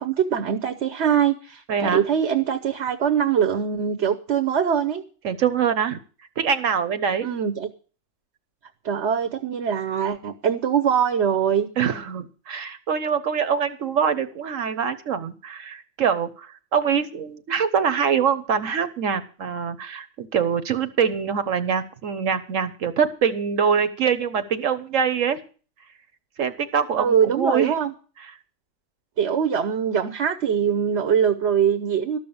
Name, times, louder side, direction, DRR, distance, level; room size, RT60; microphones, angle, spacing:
voice 1, 0.0-5.0 7.2-7.7 8.8-11.7 27.0-27.9 29.2-32.2, right 8 dB, 65° right, 9 dB, 1.1 m, -22 dB
voice 2, 1.7-2.0 5.2-6.0 6.4-7.3 11.8-25.4 26.4-27.7, right 7 dB, 80° right, 10 dB, 1.4 m, -24 dB
13.0 x 6.2 x 8.6 m, 0.39 s
omnidirectional pair, 1.3 m